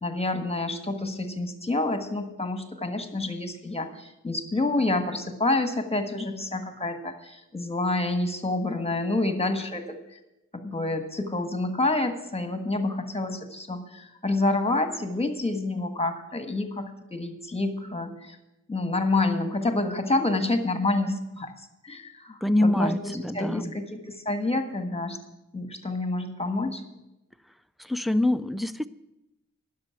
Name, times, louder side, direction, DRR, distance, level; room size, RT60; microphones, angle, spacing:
voice 1, 0.0-10.2 10.5-18.4 18.7-21.5 21.8-25.2 25.5-26.8, left 2 dB, 20° left, 7 dB, 1.5 m, -28 dB
voice 2, 22.4-23.7 27.8-28.9, left 1 dB, ahead, 12 dB, 0.4 m, -25 dB
10.5 x 6.7 x 8.5 m, 0.93 s
wide cardioid pair, 60°, 32 cm